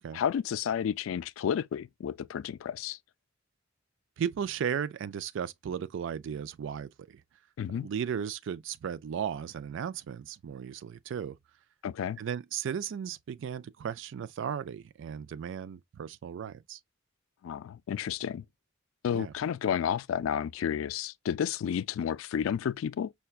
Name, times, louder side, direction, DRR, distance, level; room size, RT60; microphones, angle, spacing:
voice 1, 0.0-3.0 7.6-7.9 11.8-12.2 17.4-18.4 19.0-23.1, left 8 dB, 75° left, 0.3 m, -31 dB
voice 2, 4.2-7.2 7.8-11.3 12.2-16.8 19.1-19.3, right 8 dB, 65° right, 0.3 m, -35 dB
5.6 x 2.2 x 2.3 m
head